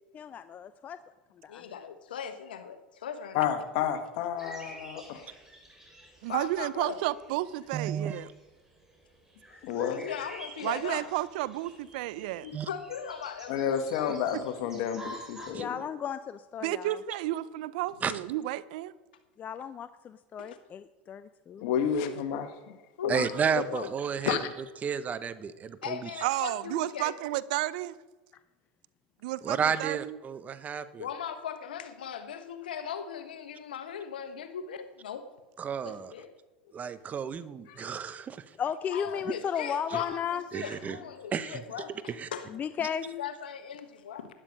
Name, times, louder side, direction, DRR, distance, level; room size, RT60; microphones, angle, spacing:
voice 1, 0.1-1.0 1.4-1.6 15.5-17.0 19.4-21.6 38.6-40.4 42.5-43.0, left 8 dB, 35° left, 13 dB, 0.5 m, -34 dB
voice 2, 1.5-3.5 3.8-4.0 6.3-7.0 9.9-11.1 12.4-14.2 18.0-18.2 20.4-20.5 23.0-23.9 24.2-24.4 25.8-27.1 31.0-35.2 35.8-36.3 38.9-42.6 43.0-44.3, left 8 dB, 80° left, 10 dB, 1.1 m, -39 dB
voice 3, 3.3-5.3 9.6-10.1 13.5-15.7 21.6-22.8 23.0-23.1 23.5-23.6 24.3-24.4 37.7-37.9, left 8 dB, 65° left, 8 dB, 1.4 m, -30 dB
sound 1, 4.4-15.5, equal, 10° right, 4.5 m, -50 dB
voice 4, 6.2-8.3 10.6-12.5 14.3-14.4 16.6-18.9 26.2-28.0 29.2-30.2, right 15 dB, 70° right, 18 dB, 0.5 m, -32 dB
voice 5, 7.7-8.2 12.5-12.7 15.5-15.6 18.0-18.1 23.1-24.4 24.8-26.1 29.4-31.1 35.6-36.1 36.7-38.4 39.9-40.0 40.5-41.0 41.3-41.6 42.1-42.3, right 7 dB, 30° right, 14 dB, 0.9 m, -32 dB
12.5 x 10.0 x 5.3 m, 1.1 s
hypercardioid pair, 85°, 5 cm